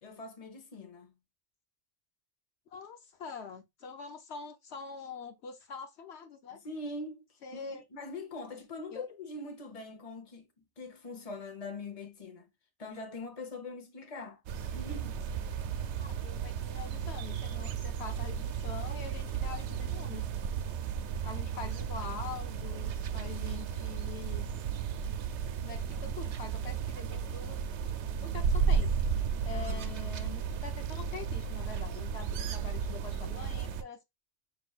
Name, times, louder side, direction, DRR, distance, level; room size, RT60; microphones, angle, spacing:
voice 1, 0.0-1.2 6.6-7.3 7.5-12.5 12.8-14.4 14.7-15.2 29.5-30.0, left 2 dB, 35° left, 1.0 m, -43 dB
voice 2, 2.7-6.6 7.4-7.8 8.9-9.1 16.0-20.3 21.2-24.5 25.6-27.6 28.2-28.9 29.4-34.0, left 5 dB, 70° left, 1.0 m, -44 dB
sound 1, 14.5-33.8, right 7 dB, 75° right, 0.8 m, -34 dB
5.9 x 3.1 x 2.4 m
omnidirectional pair, 1.2 m